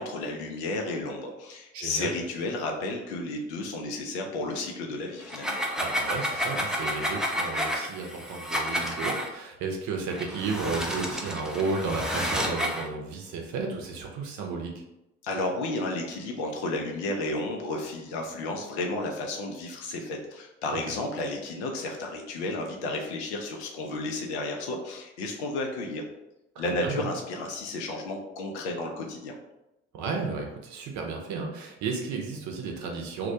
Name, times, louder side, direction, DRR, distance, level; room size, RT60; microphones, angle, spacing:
voice 1, 0.0-5.6 15.2-26.0 26.6-29.3, left 2 dB, 80° left, 2 dB, 0.5 m, -32 dB
voice 2, 1.7-2.1 5.8-14.7 26.6-27.1 29.9-33.3, right 4 dB, 60° right, 1 dB, 0.6 m, -33 dB
sound 1, 5.2-9.3 10.1-12.9, equal, ahead, 0.4 m, -30 dB
2.2 x 2.1 x 2.6 m, 0.90 s
figure-of-eight pair, 45°, 33 cm